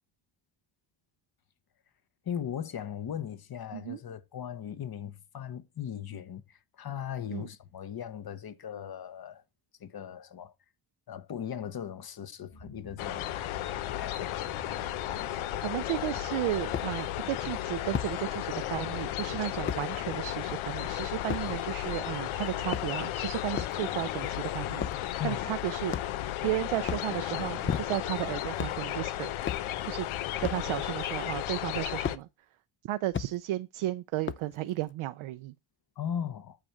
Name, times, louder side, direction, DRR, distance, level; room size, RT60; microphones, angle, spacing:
voice 1, 2.2-9.4 9.8-10.5 11.1-13.3 13.9-14.4 25.2-25.4 36.0-36.6, left 9 dB, 50° left, 1.2 m, -38 dB
sound 1, 12.5-22.0, left 1 dB, 70° left, 4.4 m, -51 dB
sound 2, 13.0-32.2, left 13 dB, 85° left, 0.8 m, -34 dB
voice 2, 15.6-24.9 25.2-26.0 26.4-29.3 29.8-30.1 30.4-32.3 32.9-35.5, right 15 dB, 80° right, 0.7 m, -34 dB
sound 3, 16.7-16.9 17.9-18.1 19.7-19.8 21.3-21.5 22.5-23.1 23.5-23.8 24.8-25.0 25.9-26.3 26.8-27.1 27.7-28.1 28.5-28.8 29.4-29.7 30.4-30.7 32.0-32.2 33.1-33.3 34.3-34.6, left 7 dB, 25° left, 0.5 m, -33 dB
8.8 x 4.3 x 5.0 m
cardioid pair, 75°, 48 cm